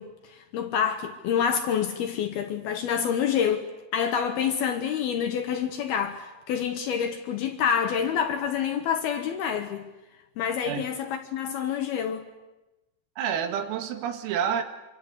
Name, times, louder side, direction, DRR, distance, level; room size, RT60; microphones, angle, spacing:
voice 1, 0.0-9.9 10.4-12.3, left 8 dB, 70° left, 2.5 m, -27 dB
voice 2, 13.2-14.6, right 8 dB, 90° right, 4.7 m, -28 dB
26.5 x 26.0 x 8.3 m
omnidirectional pair, 5.8 m